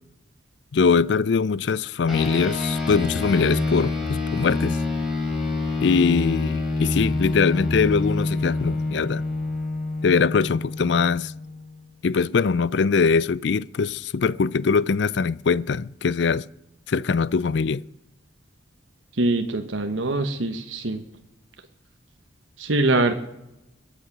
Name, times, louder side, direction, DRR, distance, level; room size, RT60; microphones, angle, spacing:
voice 1, 0.7-4.8 5.8-9.2 10.0-11.3 12.0-16.5 16.9-17.8, left 5 dB, 65° left, 0.4 m, -22 dB
sound 1, 2.1-11.8, left 2 dB, ahead, 4.6 m, -27 dB
voice 2, 19.2-21.0 22.6-23.1, right 2 dB, 85° right, 1.1 m, -23 dB
22.0 x 8.2 x 6.1 m
head